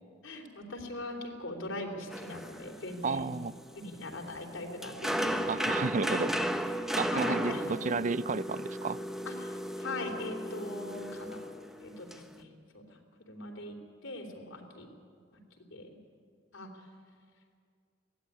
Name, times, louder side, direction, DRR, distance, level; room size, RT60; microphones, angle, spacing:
voice 1, 0.2-3.3 3.7-5.5 7.1-7.9 9.2-11.4 11.8-13.0 13.3-14.9 15.3-15.4 15.7-15.9 16.5-16.7, left 2 dB, 90° left, 3 dB, 3.4 m, -41 dB
sound 1, 2.1-12.3, equal, ahead, 1.0 m, -35 dB
voice 2, 3.0-3.5 5.5-6.3 7.0-9.0, right 4 dB, 40° right, 17 dB, 0.5 m, -32 dB
22.5 x 16.0 x 9.9 m, 2.2 s
head